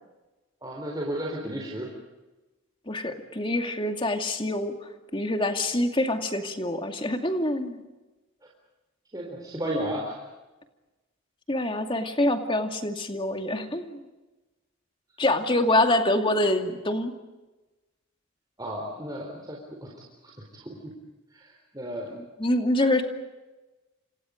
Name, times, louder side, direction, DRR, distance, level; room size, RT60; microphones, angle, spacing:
voice 1, 0.6-1.9 9.1-10.2 18.6-20.0 20.2-20.9 21.3-22.1, right 1 dB, 20° right, -2 dB, 4.2 m, -34 dB
voice 2, 2.9-4.7 5.1-7.8 11.5-14.0 15.2-17.1 22.1-23.0, left 1 dB, 25° left, 5 dB, 2.4 m, -25 dB
29.5 x 27.0 x 5.2 m, 1.1 s
head